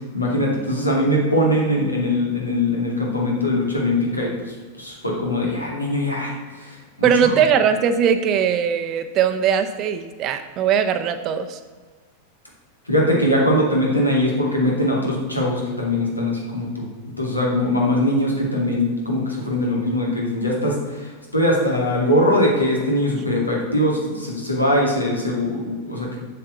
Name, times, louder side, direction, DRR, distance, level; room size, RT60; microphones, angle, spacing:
voice 1, 0.1-4.3 4.8-7.3 12.9-16.9 17.2-26.2, left 1 dB, 85° left, -2 dB, 2.6 m, -21 dB
voice 2, 7.0-11.6, right 7 dB, 35° right, 7 dB, 0.8 m, -20 dB
7.3 x 6.8 x 7.7 m, 1.4 s
figure-of-eight pair, 90°, 0 cm